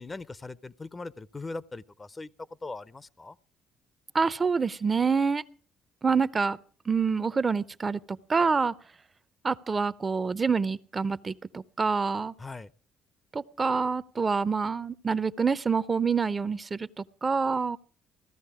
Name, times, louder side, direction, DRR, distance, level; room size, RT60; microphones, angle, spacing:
voice 1, 0.0-2.3 2.6-3.4 12.4-12.7, left 3 dB, 25° left, 0.6 m, -40 dB
voice 2, 4.1-5.4 6.0-6.6 6.9-8.7 9.4-12.3 13.3-17.8, right 5 dB, 30° right, 0.6 m, -27 dB
16.0 x 13.0 x 4.9 m
hypercardioid pair, 50°, 0 cm